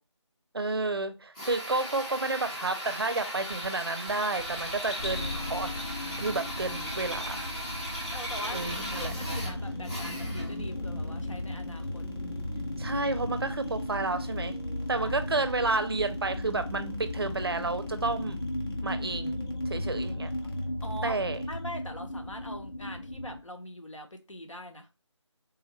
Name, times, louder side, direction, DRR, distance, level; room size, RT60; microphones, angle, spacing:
voice 1, 0.5-5.7 6.2-7.4 8.5-9.1 12.8-14.5 14.9-18.4 18.8-19.4 19.7-20.3 21.0-21.4, right 3 dB, 50° right, 0.4 m, -31 dB
Drill, 1.3-10.6, equal, 15° left, 0.6 m, -37 dB
sound 1, 3.5-21.7, left 1 dB, 50° left, 0.9 m, -45 dB
sound 2, 5.0-23.4, left 1 dB, 70° left, 1.3 m, -36 dB
voice 2, 8.1-12.0 15.0-15.2 20.8-21.2 21.4-24.9, equal, 85° left, 0.8 m, -42 dB
3.6 x 2.1 x 2.9 m
figure-of-eight pair, 160°, 16 cm